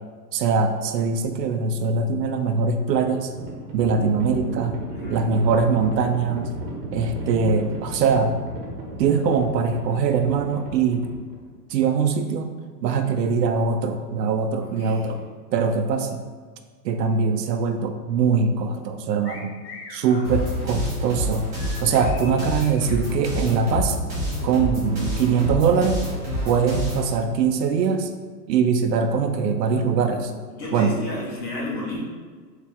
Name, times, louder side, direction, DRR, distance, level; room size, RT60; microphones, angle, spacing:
voice 1, 0.3-3.3 3.7-4.8 5.1-6.5 6.9-8.4 9.0-11.1 11.7-12.5 12.8-15.2 15.5-16.2 16.8-19.6 19.9-21.5 21.8-24.0 24.4-26.0 26.4-28.1 28.5-30.3 30.7-30.9, right 5 dB, 85° right, 7 dB, 0.6 m, -22 dB
Livestock farm animals working animals, 3.1-11.6, right 1 dB, 35° right, 0.8 m, -34 dB
voice 2, 4.9-5.2 14.6-15.1 20.0-20.3 20.7-20.8 30.5-32.0, left 1 dB, 25° left, -4 dB, 1.0 m, -33 dB
sound 1, 19.2-20.0 21.5-23.0, left 4 dB, 70° left, 1.2 m, -42 dB
sound 2, 20.2-27.1, left 1 dB, 5° right, 0.5 m, -27 dB
4.6 x 2.9 x 3.4 m, 1.5 s
hypercardioid pair, 155°, 49 cm